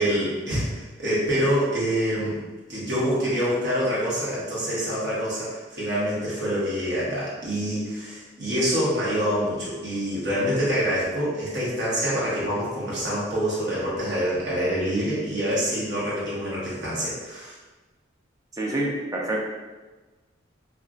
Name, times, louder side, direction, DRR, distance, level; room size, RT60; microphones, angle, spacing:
voice 1, 0.0-2.4 2.7-17.5, equal, 60° right, -7 dB, 1.0 m, -26 dB
voice 2, 18.5-19.4, right 1 dB, 20° right, -2 dB, 0.4 m, -27 dB
2.8 x 2.3 x 2.4 m, 1.2 s
head